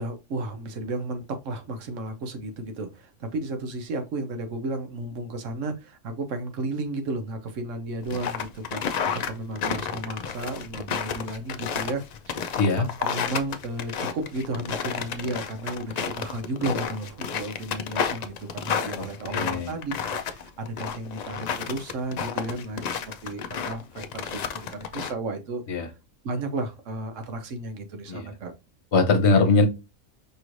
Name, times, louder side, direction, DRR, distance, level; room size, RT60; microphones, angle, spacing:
voice 1, 0.0-12.5 12.8-19.9 20.3-25.6 26.2-28.5, right 2 dB, 90° right, 1.2 m, -33 dB
sound 1, 8.0-25.1, left 7 dB, 90° left, 0.3 m, -31 dB
voice 2, 19.3-19.7 25.7-25.9 28.1-28.3 28.9-29.7, left 3 dB, 65° left, 1.1 m, -21 dB
5.3 x 3.1 x 2.5 m
omnidirectional pair, 1.3 m